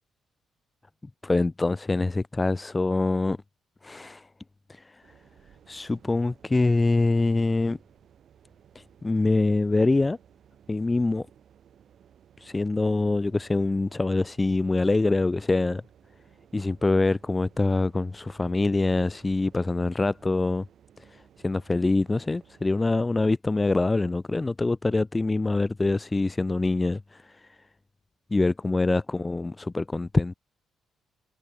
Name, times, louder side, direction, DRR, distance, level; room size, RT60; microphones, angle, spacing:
voice 1, 1.2-3.4 3.8-4.3 4.7-5.0 5.7-7.8 8.7-10.2 10.7-11.3 12.4-15.8 16.5-20.7 21.1-27.6 28.3-30.3, left 2 dB, 20° left, 0.9 m, -25 dB
sound 1, 5.0-22.9, right 9 dB, 60° right, 7.9 m, -58 dB
cardioid pair, 90°, 0 cm